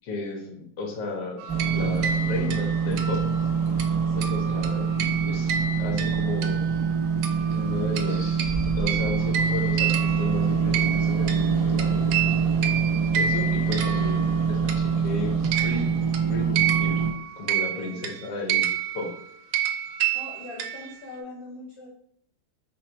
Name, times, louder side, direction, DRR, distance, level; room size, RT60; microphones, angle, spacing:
voice 1, 0.0-3.2 4.1-6.6 7.5-8.4 8.8-12.3 13.1-16.0 16.3-17.1 17.4-18.7 18.9-19.1, left 2 dB, 55° left, 2 dB, 1.2 m, -34 dB
sound 1, 1.4-6.9 7.2-15.1 15.4-21.1, right 8 dB, 80° right, 1.3 m, -30 dB
sound 2, 1.5-17.1, right 6 dB, 35° right, 0.5 m, -25 dB
voice 2, 4.0-4.4 17.7-18.0 20.1-21.9, left 2 dB, 75° left, -4 dB, 1.5 m, -41 dB
5.1 x 2.2 x 4.4 m, 0.67 s
omnidirectional pair, 2.2 m